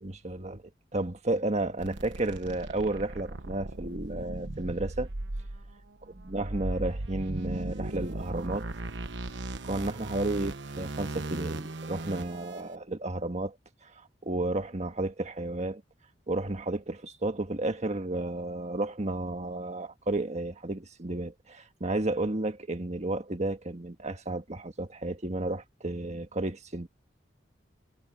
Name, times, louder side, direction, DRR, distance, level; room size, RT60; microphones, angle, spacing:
voice 1, 0.0-0.6 0.9-5.1 6.3-8.7 9.6-13.6 13.8-13.9 14.2-15.8 16.3-26.9, right 2 dB, 40° right, 1.6 m, -32 dB
sound 1, 1.8-12.6, right 2 dB, 75° right, 1.2 m, -37 dB
head